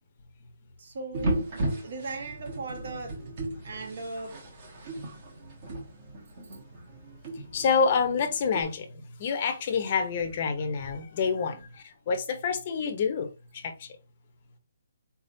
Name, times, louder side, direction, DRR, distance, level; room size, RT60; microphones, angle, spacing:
voice 1, 0.8-3.2 3.6-4.4 11.5-11.6, right 3 dB, 50° right, 1.3 m, -38 dB
sound 1, 1.1-8.6, right 1 dB, 30° right, 1.3 m, -36 dB
voice 2, 7.5-8.9 9.2-13.3 13.5-13.7, left 5 dB, 30° left, 0.8 m, -27 dB
4.5 x 3.5 x 2.7 m
hypercardioid pair, 175°, 0 cm